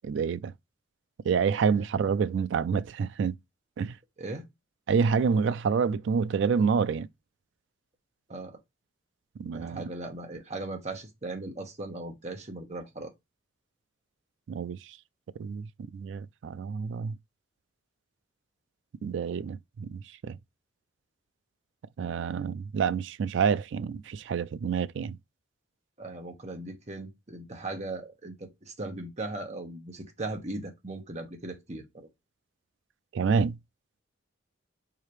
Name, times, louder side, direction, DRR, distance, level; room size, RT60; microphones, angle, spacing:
voice 1, 0.0-0.5 1.2-3.4 3.8-3.9 4.9-7.1 9.4-9.8 14.5-14.8 15.4-17.2 19.0-20.4 22.0-25.2 33.1-33.6, right 6 dB, 65° right, 0.3 m, -28 dB
voice 2, 9.5-13.1 26.0-32.1, right 2 dB, 35° right, 1.1 m, -38 dB
4.9 x 2.8 x 3.0 m
head